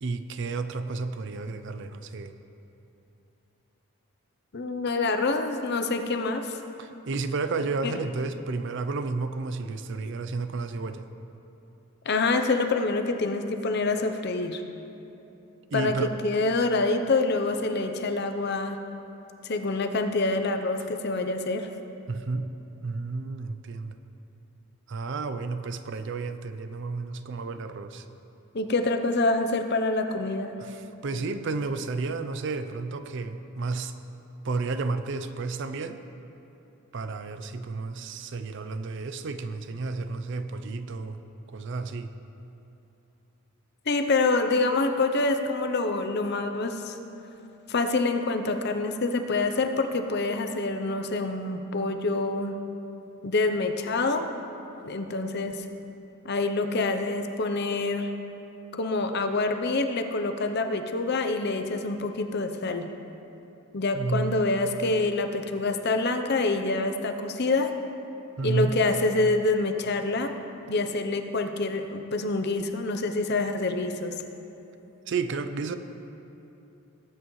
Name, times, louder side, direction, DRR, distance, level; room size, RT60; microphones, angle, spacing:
voice 1, 0.0-2.4 6.8-11.1 15.7-16.1 22.1-22.5 22.8-24.0 24.9-28.0 30.6-33.9 34.4-36.0 36.9-41.2 41.5-42.1 63.9-64.5 68.4-68.7 75.1-75.8, right 3 dB, 55° right, 10 dB, 0.5 m, -31 dB
voice 2, 4.5-6.6 7.8-7.9 12.1-14.6 15.7-18.8 19.4-21.7 28.5-30.5 43.9-46.9 47.7-52.6 53.2-54.3 54.8-55.7 56.2-58.1 58.7-62.9 63.7-67.7 68.4-70.3 70.7-74.1, left 3 dB, 50° left, 7 dB, 0.7 m, -26 dB
18.0 x 8.8 x 3.1 m, 2.9 s
head